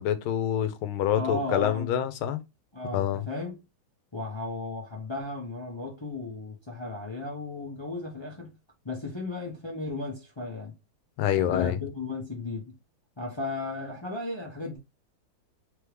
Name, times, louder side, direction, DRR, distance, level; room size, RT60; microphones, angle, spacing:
voice 1, 0.0-2.4 2.9-3.2 11.2-11.8, left 10 dB, 80° left, 1.5 m, -26 dB
voice 2, 1.1-1.9 2.7-3.6 4.1-8.5 8.8-10.7 11.3-12.7 13.2-14.8, left 2 dB, 35° left, 0.4 m, -35 dB
3.7 x 3.5 x 3.1 m
omnidirectional pair, 2.4 m